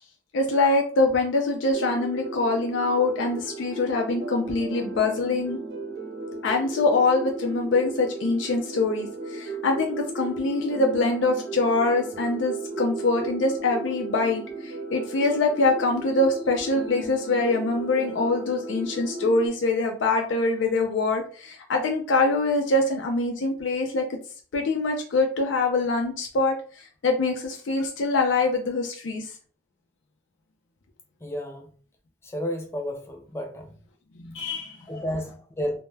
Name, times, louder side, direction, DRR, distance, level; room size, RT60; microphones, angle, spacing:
voice 1, 0.3-5.6 6.4-24.2 24.5-29.3 34.2-34.8, left 3 dB, 80° left, 2 dB, 0.4 m, -24 dB
sound 1, 1.7-19.5, right 2 dB, 65° right, 0.8 m, -35 dB
voice 2, 31.2-31.7 32.2-33.7 34.9-35.8, equal, 15° left, 3 dB, 0.4 m, -32 dB
2.1 x 2.1 x 3.2 m, 0.42 s
head